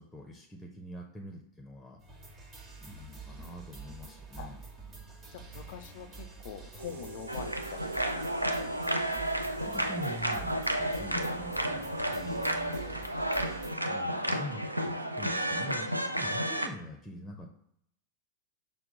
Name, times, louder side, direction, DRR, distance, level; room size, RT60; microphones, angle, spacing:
voice 1, 0.0-2.0 2.8-4.6 9.7-13.1 13.8-17.5, equal, 5° left, 2 dB, 0.6 m, -44 dB
sound 1, 2.0-13.8, right 5 dB, 20° right, 1.1 m, -48 dB
voice 2, 5.3-8.7 9.0-9.2, left 9 dB, 50° left, 10 dB, 0.4 m, -45 dB
sound 2, 6.8-12.4, right 5 dB, 65° right, 0.8 m, -50 dB
sound 3, 7.3-16.7, right 1 dB, 85° right, 0.4 m, -32 dB
5.8 x 2.2 x 3.8 m, 0.74 s
figure-of-eight pair, 90°, 0 cm